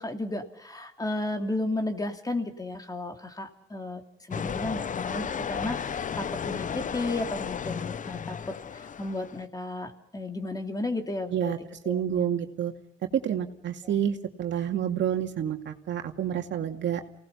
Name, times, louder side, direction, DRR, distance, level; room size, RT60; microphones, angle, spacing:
voice 1, 0.0-11.6 11.8-12.2 13.8-14.0, left 2 dB, 20° left, 5 dB, 2.8 m, -33 dB
sound 1, 4.3-9.4, left 7 dB, 40° left, 0.8 m, -34 dB
voice 2, 11.9-12.7 13.1-17.0, right 9 dB, 65° right, 4 dB, 2.3 m, -28 dB
28.5 x 18.5 x 5.6 m, 0.79 s
cardioid pair, 90°, 20 cm